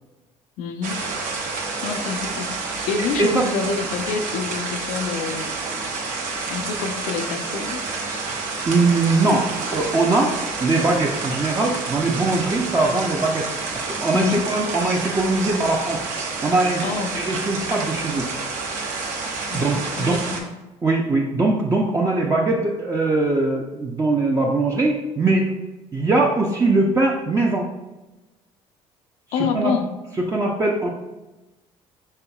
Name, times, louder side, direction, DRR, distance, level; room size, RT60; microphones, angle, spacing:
voice 1, 0.6-1.0 1.8-5.5 6.5-8.2 14.1-14.4 16.8-17.1 19.5-20.6 29.3-29.9, left 5 dB, 80° left, 6 dB, 0.5 m, -27 dB
sound 1, 0.8-20.4, right 4 dB, 80° right, 0.9 m, -29 dB
voice 2, 3.2-3.5 8.7-10.3 10.6-16.0 16.4-16.8 17.1-18.3 19.5-20.2 20.8-25.5 25.9-27.7 29.5-29.7 30.2-30.9, right 2 dB, 25° right, -2 dB, 0.5 m, -21 dB
5.6 x 3.8 x 2.3 m, 1.1 s
cardioid pair, 100°, 13 cm